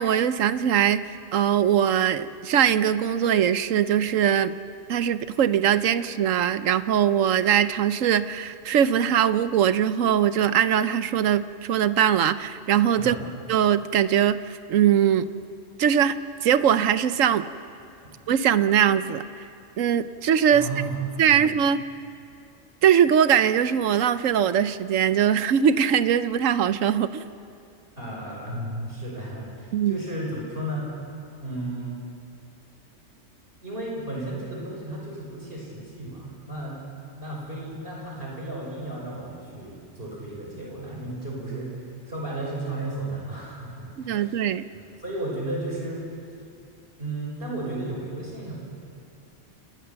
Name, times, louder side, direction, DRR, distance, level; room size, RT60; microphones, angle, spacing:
voice 1, 0.0-4.5 4.9-13.2 13.5-15.3 15.8-17.5 18.3-19.2 19.8-20.7 21.2-21.8 22.8-27.2 29.7-30.0 44.0-44.6, right 9 dB, 85° right, 13 dB, 1.2 m, -21 dB
voice 2, 20.5-21.0 21.3-21.5 28.0-30.9 31.4-32.0 33.6-36.8 37.1-41.7 42.1-44.3 45.0-46.0 47.0-48.5, right 1 dB, 45° right, -3 dB, 5.6 m, -34 dB
29.5 x 19.0 x 6.9 m, 2.5 s
omnidirectional pair, 1.3 m